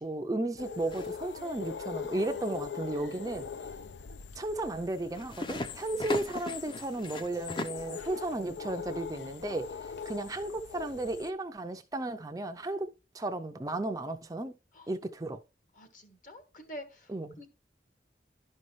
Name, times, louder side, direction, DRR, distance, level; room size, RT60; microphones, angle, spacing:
voice 1, 0.0-3.4 4.4-12.9 13.1-14.5 14.9-15.4 17.1-17.3, right 2 dB, 20° right, 0.4 m, -34 dB
sound 1, 0.6-11.3, left 6 dB, 80° left, 0.5 m, -42 dB
sound 2, 0.9-1.3 5.0-7.9, left 1 dB, 25° left, 0.6 m, -38 dB
voice 2, 15.7-17.5, equal, 45° left, 1.5 m, -48 dB
11.5 x 5.4 x 3.1 m
head